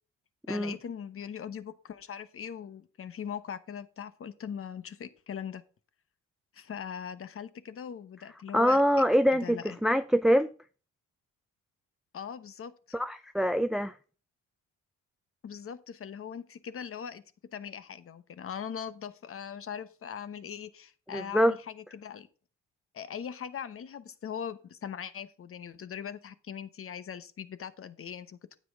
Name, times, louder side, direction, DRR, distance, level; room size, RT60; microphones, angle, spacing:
voice 1, 0.5-5.6 6.5-8.8 9.3-9.8 12.1-12.7 15.4-17.2 17.5-22.3 22.9-28.6, left 8 dB, 45° left, 1.0 m, -40 dB
voice 2, 8.5-10.5 12.9-14.0 21.1-21.6, equal, ahead, 0.4 m, -24 dB
9.6 x 7.8 x 3.6 m
cardioid pair, 90°, 30 cm